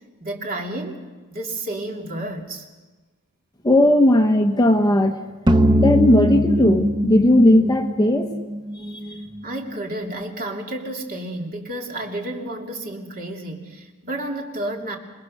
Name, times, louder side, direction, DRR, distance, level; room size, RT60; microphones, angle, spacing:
voice 1, 0.2-1.0 1.3-2.6 9.4-15.0, right 1 dB, 40° right, 1 dB, 3.1 m, -31 dB
voice 2, 3.6-5.2 5.8-8.3 8.8-9.2, left 1 dB, 15° left, 5 dB, 1.0 m, -17 dB
sound 1, 5.5-8.7, equal, 20° right, 0.9 m, -19 dB
27.5 x 20.5 x 6.6 m, 1.3 s
head